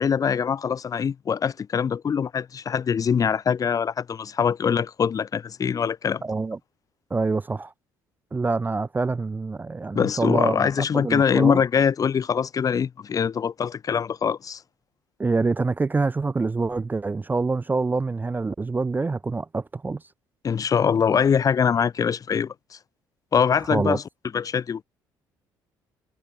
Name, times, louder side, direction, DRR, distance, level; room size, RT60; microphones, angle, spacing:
voice 1, 0.0-6.2 9.9-14.6 20.4-22.5 23.3-24.0 24.3-24.8, left 7 dB, 40° left, 0.5 m, -23 dB
voice 2, 6.2-6.6 7.1-7.7 8.3-10.7 10.9-11.6 15.2-20.0 23.7-24.0, right 3 dB, 20° right, 0.4 m, -26 dB
hypercardioid pair, 65°, 10 cm